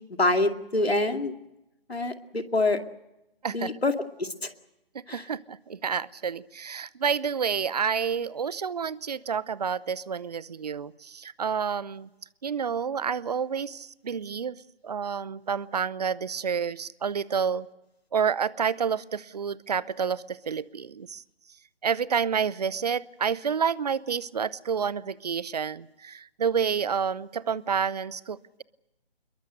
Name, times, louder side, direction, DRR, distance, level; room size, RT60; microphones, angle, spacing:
voice 1, 0.2-1.3 1.9-2.8 3.5-3.9 4.2-4.5 5.1-5.2, left 2 dB, 85° left, 7 dB, 2.4 m, -25 dB
voice 2, 4.9-12.1 12.4-17.7 18.1-21.2 21.8-28.6, right 6 dB, 40° right, 21 dB, 0.8 m, -29 dB
26.5 x 22.0 x 6.7 m, 0.93 s
figure-of-eight pair, 145°, 30 cm